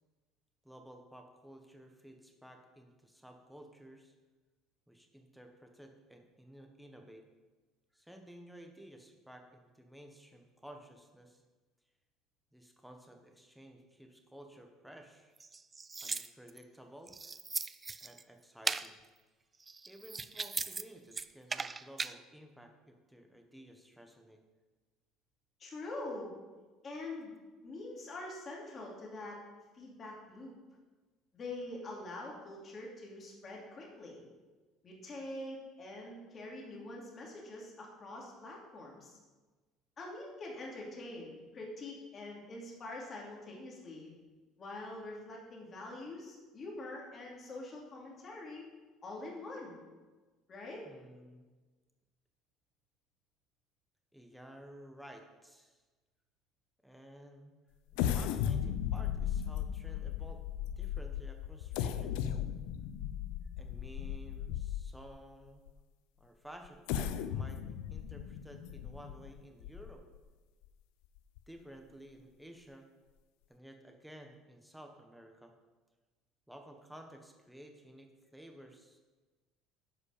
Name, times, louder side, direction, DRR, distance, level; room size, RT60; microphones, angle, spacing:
voice 1, 0.6-4.1 4.9-7.2 7.9-11.4 12.5-15.3 16.0-17.4 18.0-19.0 19.9-24.4 50.8-51.5 54.1-55.8 56.8-57.6 57.9-60.4 60.8-62.4 63.6-65.7 66.2-70.0 71.5-72.8 73.5-75.5 76.5-79.0, right 1 dB, ahead, 3 dB, 1.3 m, -54 dB
sound 1, 15.4-16.6 17.1-18.2 18.6-18.9 19.6-20.8 21.1-22.1, right 4 dB, 20° right, 0.3 m, -38 dB
voice 2, 25.6-26.3 26.8-27.3 27.6-29.4 29.7-30.5 31.3-34.2 34.8-39.2 40.0-44.1 44.6-48.6 49.0-49.8 50.5-50.8, left 2 dB, 30° left, -2 dB, 2.7 m, -45 dB
sound 2, 57.9-65.1 65.7-65.8 66.6-70.2 70.6-70.7 71.2-71.4, left 9 dB, 85° left, 0.6 m, -36 dB
10.0 x 5.3 x 6.7 m, 1.3 s
cardioid pair, 135°, 0 cm